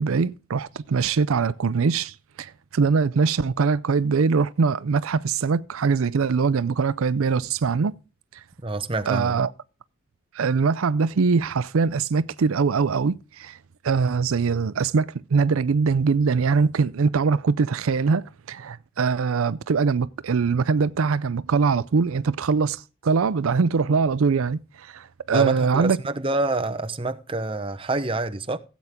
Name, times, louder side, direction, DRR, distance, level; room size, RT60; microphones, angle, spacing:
voice 1, 0.0-8.0 8.3-8.4 9.1-9.5 10.3-13.6 13.8-26.0, right 5 dB, 75° right, 0.5 m, -22 dB
voice 2, 8.6-9.4 25.3-28.6, right 2 dB, 25° right, 0.8 m, -27 dB
16.0 x 8.2 x 3.6 m
head